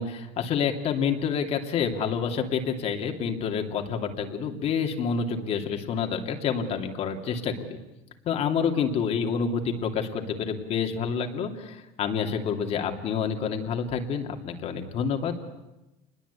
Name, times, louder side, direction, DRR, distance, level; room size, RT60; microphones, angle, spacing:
voice 1, 0.0-7.8 8.2-15.4, left 6 dB, 40° left, 3 dB, 2.8 m, -28 dB
28.5 x 21.5 x 8.4 m, 0.99 s
cardioid pair, 145°, 16 cm